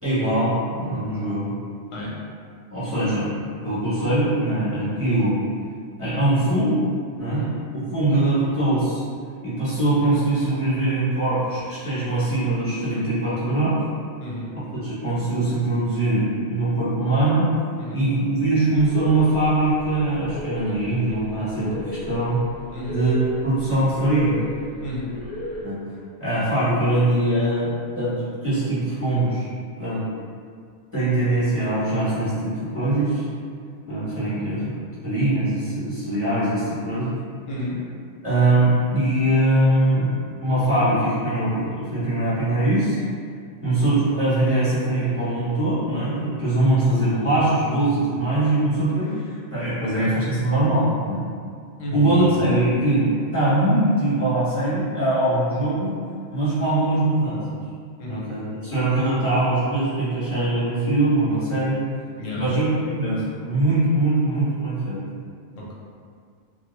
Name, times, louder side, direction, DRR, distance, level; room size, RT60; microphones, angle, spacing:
voice 1, 0.0-1.5 2.7-5.4 6.0-6.8 7.2-7.4 7.7-9.0 9.4-13.7 14.7-17.5 17.9-22.4 22.9-24.4 25.6-25.8 26.2-28.1 28.4-29.5 29.8-30.0 30.9-33.2 33.9-37.2 38.2-40.1 40.4-43.0 43.6-49.1 49.5-51.2 51.9-55.9 56.3-57.4 58.1-61.9 62.4-65.0, right 2 dB, 10° right, -14 dB, 0.9 m, -22 dB
sound 1, 18.7-25.6, left 1 dB, 65° left, 0.9 m, -36 dB
voice 2, 24.8-25.1 37.5-37.8 50.0-50.1 51.8-52.4 58.0-58.3 62.2-62.6 65.5-65.8, left 1 dB, 85° left, -5 dB, 1.0 m, -32 dB
2.3 x 2.3 x 3.1 m, 2.2 s
omnidirectional pair, 1.3 m